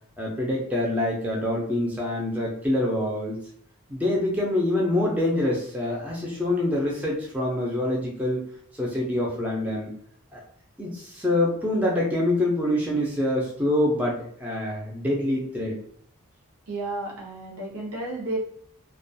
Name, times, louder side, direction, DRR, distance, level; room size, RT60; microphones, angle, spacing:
voice 1, 0.2-3.4 3.9-8.4 8.8-9.9 10.3-10.4 10.8-15.8, left 1 dB, 5° right, -4 dB, 0.4 m, -25 dB
voice 2, 16.7-18.4, right 2 dB, 85° right, -3 dB, 0.6 m, -32 dB
2.3 x 2.2 x 2.6 m, 0.64 s
head